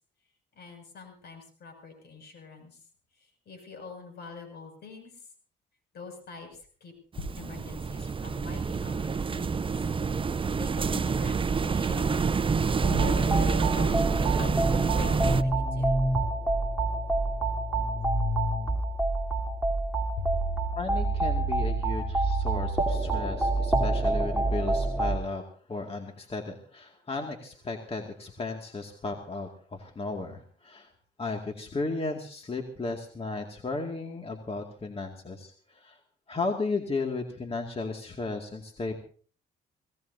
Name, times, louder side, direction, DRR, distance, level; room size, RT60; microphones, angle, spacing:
voice 1, 0.5-2.8 3.2-5.3 5.9-9.7 10.6-12.2 12.8-14.0 14.3-16.0 20.2-20.3, left 4 dB, 65° left, 5 dB, 6.6 m, -44 dB
sound 1, 7.2-15.4, right 5 dB, 30° right, 0.7 m, -27 dB
sound 2, 12.8-25.2, right 2 dB, 5° right, 3.6 m, -27 dB
voice 2, 20.8-25.4 25.7-30.9 31.2-36.0 36.3-39.0, left 3 dB, 30° left, 3 dB, 2.3 m, -35 dB
25.0 x 17.0 x 2.8 m, 0.43 s
supercardioid pair, 70°, 18 cm